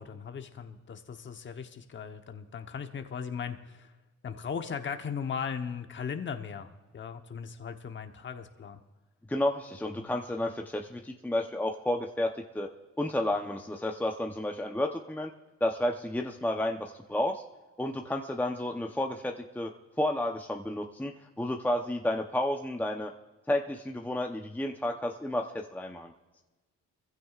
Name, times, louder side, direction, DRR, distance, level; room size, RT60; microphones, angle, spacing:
voice 1, 0.0-3.9 4.2-8.8 10.0-10.1, left 6 dB, 40° left, 6 dB, 1.0 m, -38 dB
voice 2, 9.3-12.7 13.0-15.3 15.6-17.4 17.8-19.7 20.0-23.1 23.5-26.1, left 1 dB, 5° left, 2 dB, 0.8 m, -31 dB
22.5 x 15.5 x 2.5 m, 1.2 s
cardioid pair, 90°, 30 cm